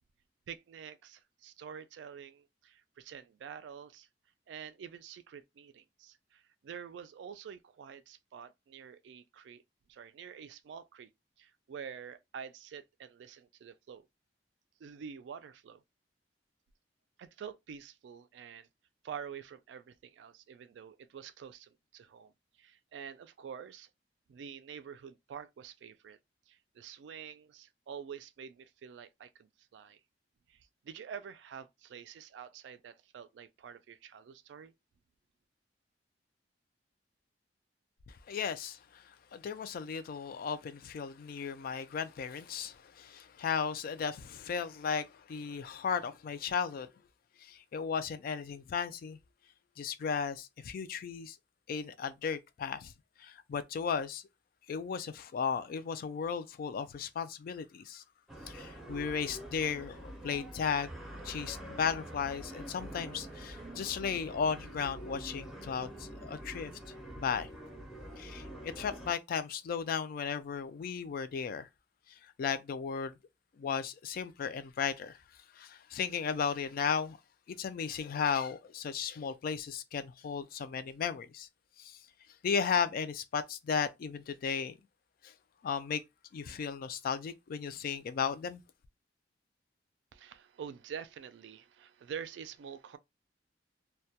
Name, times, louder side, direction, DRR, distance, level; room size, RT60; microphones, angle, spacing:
voice 1, 0.5-4.1 4.5-9.6 9.9-11.1 11.4-14.1 14.8-15.8 17.2-18.7 19.0-22.3 22.6-23.9 24.3-26.2 26.5-30.0 30.5-34.7 90.1-93.0, right 7 dB, 75° right, 0.3 m, -47 dB
voice 2, 38.1-46.9 47.4-49.2 49.8-51.4 51.7-52.9 53.2-54.2 54.7-58.0 58.5-60.9 61.2-66.7 67.2-67.5 68.2-71.7 72.2-73.2 73.6-75.2 75.5-77.2 77.5-81.5 81.8-82.0 82.4-84.8 85.2-85.3 85.6-86.0 86.3-88.6, left 6 dB, 55° left, 0.3 m, -35 dB
sound 1, 58.3-69.1, right 1 dB, ahead, 0.5 m, -46 dB
2.2 x 2.1 x 2.7 m
head